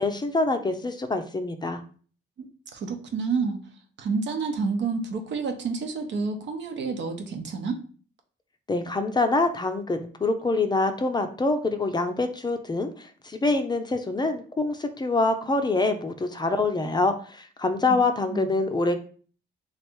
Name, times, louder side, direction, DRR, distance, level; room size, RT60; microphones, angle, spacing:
voice 1, 0.0-1.8 8.7-19.0, left 3 dB, 20° left, 7 dB, 0.5 m, -25 dB
voice 2, 2.7-3.6 4.0-7.8 17.9-18.0 18.3-18.5, right 4 dB, 65° right, 5 dB, 0.8 m, -29 dB
3.2 x 2.5 x 4.4 m, 0.42 s
cardioid pair, 90°, 20 cm